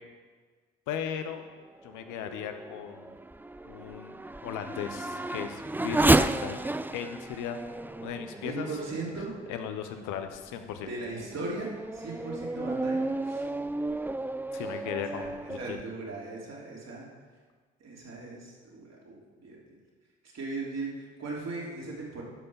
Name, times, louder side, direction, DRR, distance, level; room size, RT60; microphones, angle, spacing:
voice 1, 0.9-1.4 1.8-3.1 3.6-4.1 4.4-6.6 6.9-7.6 8.0-8.7 9.5-10.9 14.5-15.8, left 8 dB, 75° left, 7 dB, 1.0 m, -37 dB
Race car auto racing / Accelerating revving vroom, 1.8-9.7 10.3-10.4 11.0-15.8, right 2 dB, 5° right, 0.4 m, -31 dB
voice 2, 8.4-9.4 10.8-14.1 14.5-14.6 15.1-17.1 17.8-19.8 20.3-22.2, right 3 dB, 55° right, -3 dB, 3.3 m, -38 dB
12.0 x 5.5 x 7.2 m, 1.5 s
hypercardioid pair, 40°, 31 cm